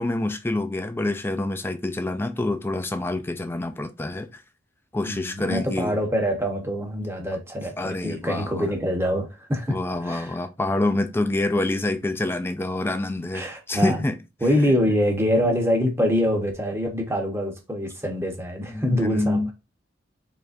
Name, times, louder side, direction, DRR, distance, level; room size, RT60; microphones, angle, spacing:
voice 1, 0.0-4.4 4.9-5.9 7.8-8.7 9.7-14.2 15.4-15.5 16.0-16.2 18.7-19.5, left 2 dB, 10° left, 0.4 m, -27 dB
voice 2, 5.1-9.7 10.0-10.3 13.3-14.0 14.4-19.5, equal, 15° right, 0.8 m, -24 dB
3.9 x 3.2 x 2.5 m
head